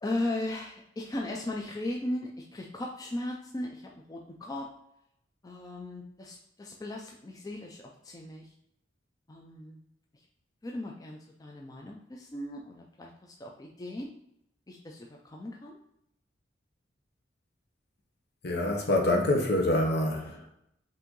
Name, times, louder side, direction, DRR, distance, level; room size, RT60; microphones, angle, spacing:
voice 1, 0.0-4.7 5.4-8.5 9.3-9.8 10.6-14.1 14.7-15.8, left 1 dB, 20° left, 0 dB, 0.4 m, -37 dB
voice 2, 18.4-20.5, left 1 dB, 60° left, 2 dB, 1.0 m, -26 dB
5.5 x 2.6 x 3.7 m, 0.76 s
head